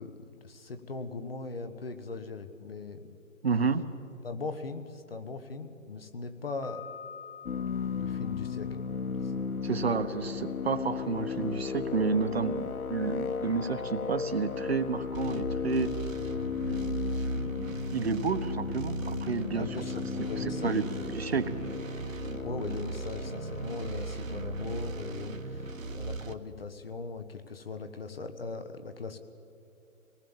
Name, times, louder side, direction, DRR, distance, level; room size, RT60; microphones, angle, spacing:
voice 1, 0.0-3.2 4.2-6.8 7.9-8.8 9.2-9.3 19.5-21.0 22.4-29.2, left 4 dB, 45° left, 9 dB, 1.4 m, -39 dB
voice 2, 3.4-3.9 9.6-15.9 16.7-16.8 17.6-19.7 20.4-20.8 21.1-21.6, right 5 dB, 45° right, 9 dB, 1.2 m, -30 dB
Piano, 6.6-9.5, left 7 dB, 25° left, 1.6 m, -48 dB
sound 1, 7.4-26.2, left 6 dB, 80° left, 1.2 m, -36 dB
sound 2, 15.1-26.3, right 3 dB, 65° right, 1.4 m, -38 dB
25.5 x 19.0 x 7.2 m, 2.7 s
hypercardioid pair, 170°, 42 cm